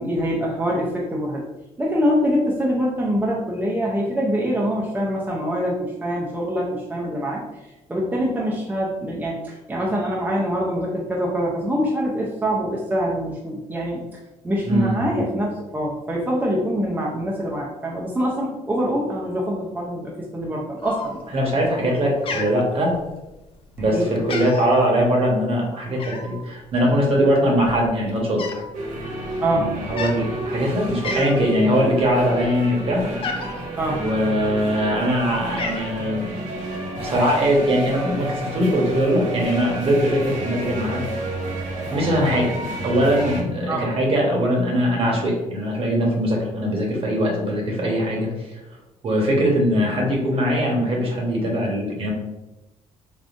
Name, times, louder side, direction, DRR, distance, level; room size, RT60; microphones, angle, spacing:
voice 1, 0.0-1.4 1.8-7.4 7.9-14.1 14.4-21.2 23.9-24.1 29.4-29.8 33.8-34.0 43.7-43.8, equal, 15° right, -3 dB, 0.5 m, -24 dB
voice 2, 14.7-15.1 21.3-22.9 23.8-28.4 29.5-33.0 33.5-33.6 33.9-36.3 37.0-41.2 41.9-42.5 42.8-48.6 49.0-52.1, equal, 50° right, -2 dB, 1.1 m, -21 dB
Cat, 20.8-21.5 21.8-22.0 22.3-23.3 23.7-23.9 24.2-24.8 26.0-26.4 27.2-27.3 27.5-28.7 29.0-29.2 29.8-30.2 30.7-30.8 31.0-31.6 32.0-33.6 34.4-35.0 35.3-35.9, left 4 dB, 45° left, 0.5 m, -32 dB
sound 1, 28.7-43.4, right 2 dB, 85° right, 0.8 m, -30 dB
3.5 x 2.4 x 2.5 m, 1.0 s
cardioid pair, 95°, 13 cm